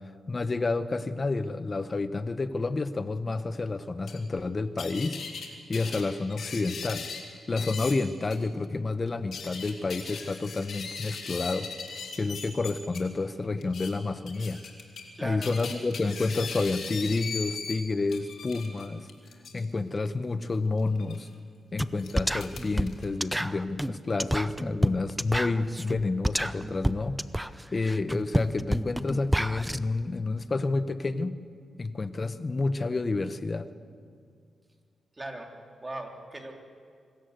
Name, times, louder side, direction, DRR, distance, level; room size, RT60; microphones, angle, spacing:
voice 1, 0.3-5.2 5.7-7.1 7.5-11.7 12.2-14.6 15.2-19.1 19.5-21.3 21.7-27.2 27.7-31.4 31.8-33.7, left 3 dB, 40° left, 12 dB, 1.0 m, -29 dB
sound 1, 4.1-4.2 4.8-5.5 5.7-7.2 7.6-7.9 8.3-8.4 9.1-13.0 13.6-13.9 14.3-15.1 15.4-17.8 18.1-19.6 21.0-21.2 22.0-23.1, left 5 dB, 75° left, 2.7 m, -38 dB
voice 2, 15.1-15.5 35.2-35.5 35.8-36.5, right 2 dB, 25° right, 2 dB, 3.2 m, -38 dB
sound 2, 21.8-21.9 22.2-29.8, right 1 dB, 5° right, 0.7 m, -29 dB
25.0 x 13.5 x 8.0 m, 2.2 s
cardioid pair, 60°, 0 cm